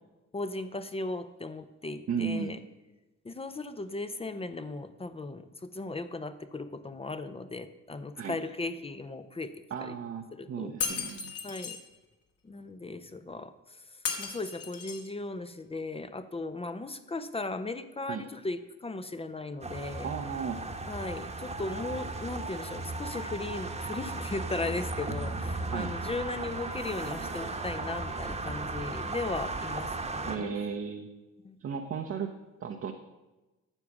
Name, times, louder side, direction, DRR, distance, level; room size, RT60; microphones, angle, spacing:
voice 1, 0.3-2.6 3.2-9.5 9.8-9.9 10.3-10.7 11.4-11.8 12.4-20.1 20.9-30.5 31.4-31.6, left 2 dB, 20° left, 11 dB, 0.6 m, -37 dB
voice 2, 2.1-2.5 8.2-8.4 9.7-11.3 18.1-18.2 20.0-20.6 25.7-25.9 30.3-31.1 31.6-32.3 32.6-32.9, right 6 dB, 45° right, 3 dB, 0.8 m, -34 dB
Shatter, 10.8-11.8 14.1-15.1, left 5 dB, 55° left, 1.7 m, -35 dB
sound 1, 19.6-30.4, right 2 dB, 20° right, 1.1 m, -36 dB
9.9 x 7.0 x 6.0 m, 1.1 s
cardioid pair, 90°, 30 cm